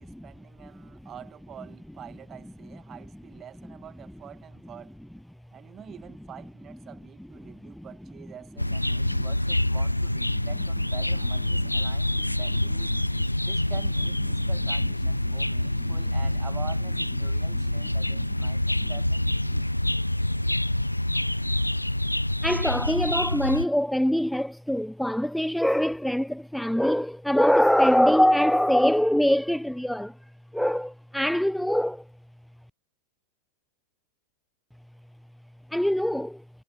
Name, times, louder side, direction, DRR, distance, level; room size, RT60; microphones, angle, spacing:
voice 1, 0.0-5.0 5.5-12.9 13.4-19.3, right 10 dB, 25° right, 1.6 m, -46 dB
voice 2, 7.4-7.9 9.1-9.2 18.8-18.9 19.5-19.6 22.4-30.2 30.5-32.0 35.7-36.4, equal, ahead, 0.4 m, -23 dB
sound 1, 8.6-23.7, left 1 dB, 85° left, 0.6 m, -26 dB
figure-of-eight pair, 90°, 0 cm